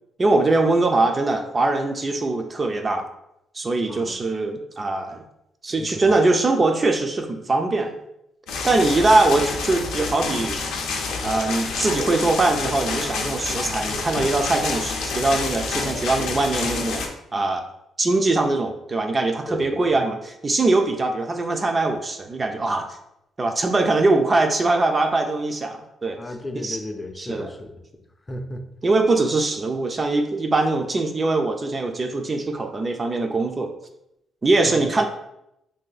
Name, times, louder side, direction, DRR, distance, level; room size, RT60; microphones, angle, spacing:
voice 1, 0.2-3.0 3.5-5.2 5.6-8.0 8.6-10.6 11.2-17.0 17.3-17.6 18.0-22.9 23.4-26.2 26.6-26.8 27.2-27.5 28.8-33.7 34.4-35.0, right 2 dB, 30° right, 4 dB, 0.4 m, -22 dB
voice 2, 3.9-4.2 5.7-6.1 8.9-9.0 19.5-19.9 26.2-27.8 28.3-28.6 34.6-34.9, left 1 dB, 25° left, 5 dB, 0.5 m, -34 dB
sound 1, 8.5-17.1, left 4 dB, 85° left, 0.5 m, -28 dB
2.7 x 2.6 x 3.9 m, 0.83 s
cardioid pair, 90°, 0 cm